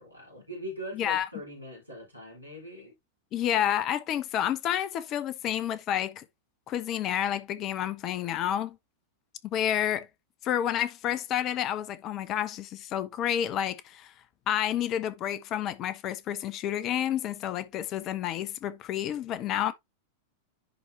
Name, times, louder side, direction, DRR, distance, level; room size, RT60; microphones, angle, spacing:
voice 1, 0.0-2.9, equal, 85° right, 4.3 m, -41 dB
voice 2, 0.9-1.3 3.3-6.2 6.7-8.8 9.4-10.1 10.4-14.1 14.5-19.7, left 10 dB, 35° left, 0.9 m, -29 dB
10.5 x 4.4 x 2.8 m
figure-of-eight pair, 90°, 0 cm